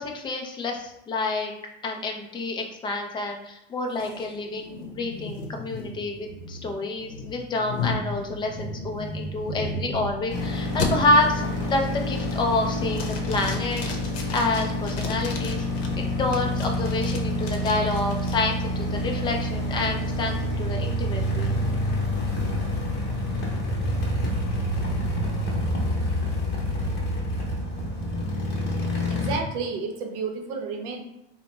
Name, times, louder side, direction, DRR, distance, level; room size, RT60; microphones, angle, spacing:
voice 1, 0.0-1.5 1.8-11.4 11.7-14.0 14.3-15.6 15.9-21.5, left 2 dB, 15° left, 2 dB, 0.4 m, -28 dB
sound 1, 4.0-10.3 10.8-10.9 11.4-11.7 12.1-12.6 12.9-15.9 16.3-18.3, left 3 dB, 85° left, 0.7 m, -34 dB
sound 2, 10.3-29.4, left 1 dB, 35° left, 0.9 m, -27 dB
voice 2, 29.1-31.0, right 4 dB, 55° right, 2 dB, 0.7 m, -31 dB
2.8 x 2.1 x 3.2 m, 0.83 s
supercardioid pair, 125°, 32 cm